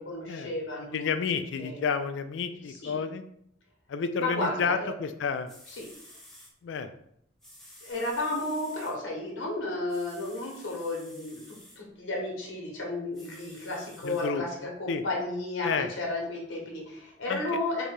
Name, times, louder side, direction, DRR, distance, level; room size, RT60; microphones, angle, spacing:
voice 1, 0.0-1.1 1.6-1.9 2.7-3.0 4.2-4.9 5.7-5.9 7.8-17.9, left 2 dB, 85° left, -1 dB, 1.1 m, -33 dB
voice 2, 0.9-3.2 3.9-5.5 6.6-6.9 14.0-14.4 14.9-15.0 15.6-15.9 17.3-17.4, left 5 dB, 70° left, 9 dB, 0.3 m, -30 dB
sound 1, 5.2-5.3 5.5-6.5 7.4-8.9 9.9-11.8 13.1-14.3 14.9-15.0, equal, ahead, 0.7 m, -52 dB
3.9 x 2.2 x 3.2 m, 0.70 s
head